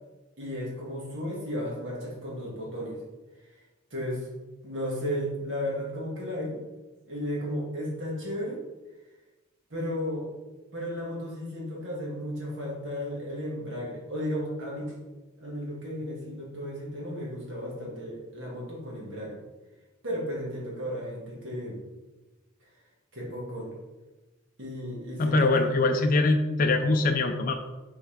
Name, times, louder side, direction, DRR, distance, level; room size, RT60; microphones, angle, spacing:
voice 1, 0.4-3.0 3.9-4.3 4.6-6.6 7.1-8.6 9.7-10.3 10.7-14.9 15.4-19.4 20.0-21.8 23.1-23.7 24.6-25.8, equal, 60° right, -3 dB, 2.0 m, -34 dB
voice 2, 25.2-27.6, left 2 dB, 40° left, 5 dB, 0.4 m, -23 dB
6.2 x 4.6 x 3.4 m, 1.1 s
head